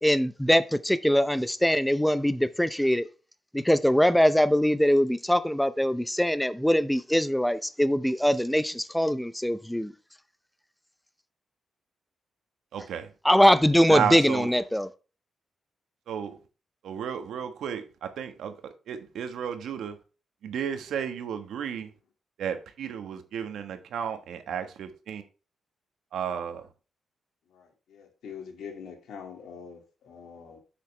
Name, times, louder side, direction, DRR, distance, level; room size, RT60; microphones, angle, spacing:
voice 1, 0.0-3.1 3.5-9.9 13.2-14.9, equal, 5° left, 0.6 m, -22 dB
voice 2, 12.7-13.1 13.9-14.5 16.1-16.3 16.8-19.9 20.4-21.9 22.4-25.2 26.1-26.6, right 8 dB, 85° right, 1.3 m, -33 dB
voice 3, 27.5-30.6, left 6 dB, 80° left, 2.2 m, -44 dB
7.5 x 7.1 x 3.3 m
cardioid pair, 110°, 0 cm